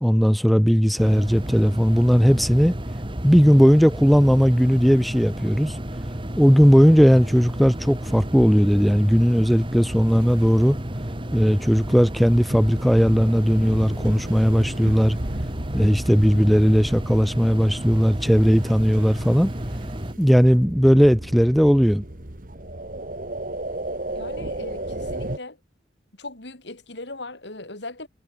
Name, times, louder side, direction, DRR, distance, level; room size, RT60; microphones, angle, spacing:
voice 1, 0.0-2.7 3.2-5.8 6.4-10.8 11.3-15.2 15.7-19.5 20.2-22.0, equal, ahead, 0.7 m, -17 dB
sound 1, 1.0-20.1, equal, 25° right, 2.5 m, -32 dB
sound 2, 10.1-25.4, right 1 dB, 45° right, 2.2 m, -35 dB
voice 2, 24.1-25.6 26.2-28.1, left 2 dB, 70° left, 3.6 m, -38 dB
head